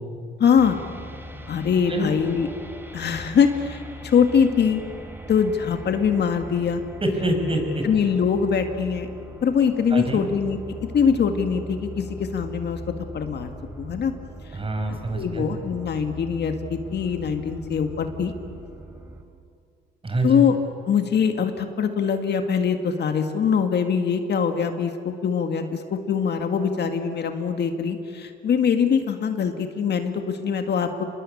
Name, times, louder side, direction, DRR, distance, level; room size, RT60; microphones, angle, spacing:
voice 1, 0.4-0.8 1.5-2.5 2.9-4.8 5.3-6.8 7.8-9.1 9.4-10.6 10.9-12.8 13.1-13.5 13.8-14.1 14.9-18.3 20.2-20.6 20.9-31.0, left 6 dB, 60° left, 6 dB, 2.0 m, -23 dB
sound 1, 0.6-19.2, equal, 10° right, 3.2 m, -40 dB
voice 2, 7.0-7.9 9.9-10.2 14.5-15.4 20.0-20.4, right 1 dB, 25° right, 4 dB, 5.5 m, -25 dB
26.0 x 21.5 x 8.6 m, 2.4 s
cardioid pair, 90°, 20 cm